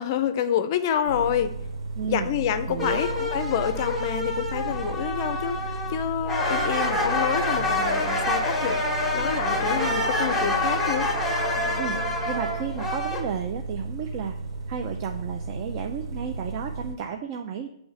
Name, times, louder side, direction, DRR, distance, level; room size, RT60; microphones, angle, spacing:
voice 1, 0.0-1.5 2.1-5.6 5.9-11.1, left 9 dB, 40° left, 11 dB, 0.4 m, -28 dB
sound 1, 1.1-17.0, right 3 dB, 65° right, 0.8 m, -34 dB
voice 2, 2.0-2.3 2.7-3.0 11.8-12.0 12.2-14.3 14.7-17.7, right 7 dB, 35° right, 4 dB, 0.4 m, -32 dB
sound 2, 2.8-6.0 6.3-13.2, left 2 dB, 5° left, 1.0 m, -27 dB
7.2 x 3.2 x 4.7 m, 0.75 s
figure-of-eight pair, 130°, 3 cm